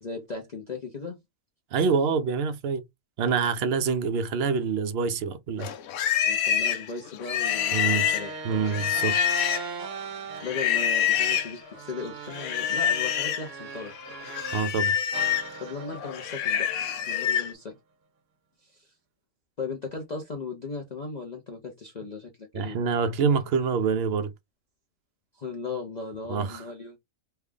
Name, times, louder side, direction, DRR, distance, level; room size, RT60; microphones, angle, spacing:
voice 1, 0.0-1.2 6.2-8.4 10.4-13.9 15.6-16.7 17.1-17.8 18.6-18.9 19.6-22.8 25.3-27.0, left 4 dB, 40° left, 0.7 m, -37 dB
voice 2, 1.7-2.8 3.2-5.7 7.7-8.1 8.4-9.2 14.5-14.9 22.5-24.3 26.3-26.6, right 5 dB, 60° right, 0.7 m, -26 dB
Livestock farm animals working animals, 5.6-9.8 10.4-11.5 12.3-13.5 13.8-17.5, left 9 dB, 85° left, 1.0 m, -26 dB
sound 1, 7.4-14.8 15.1-17.5, right 4 dB, 85° right, 1.3 m, -40 dB
3.3 x 2.3 x 3.5 m
omnidirectional pair, 1.4 m